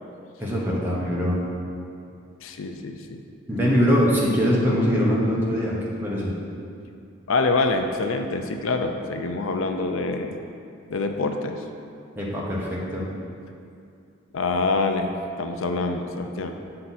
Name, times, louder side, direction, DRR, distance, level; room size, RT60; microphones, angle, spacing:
voice 1, 0.4-1.4 3.5-6.3 12.2-13.1, equal, 10° right, -5 dB, 1.1 m, -22 dB
voice 2, 2.4-3.2 7.3-10.4 10.9-11.6 14.3-15.1 15.4-16.5, left 3 dB, 85° left, 5 dB, 0.5 m, -25 dB
7.7 x 5.7 x 4.2 m, 2.5 s
head